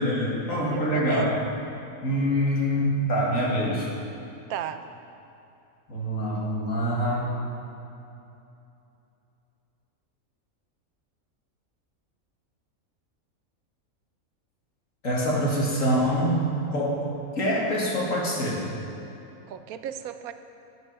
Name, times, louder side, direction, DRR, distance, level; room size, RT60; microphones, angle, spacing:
voice 1, 0.0-1.4 2.0-3.9 5.9-7.3 15.0-16.4 16.7-17.0 17.4-18.7, equal, 65° left, -4 dB, 2.5 m, -25 dB
voice 2, 0.7-1.3 4.5-4.8 19.5-20.3, right 10 dB, 90° right, 10 dB, 1.1 m, -35 dB
13.0 x 8.3 x 5.4 m, 2.8 s
omnidirectional pair, 1.5 m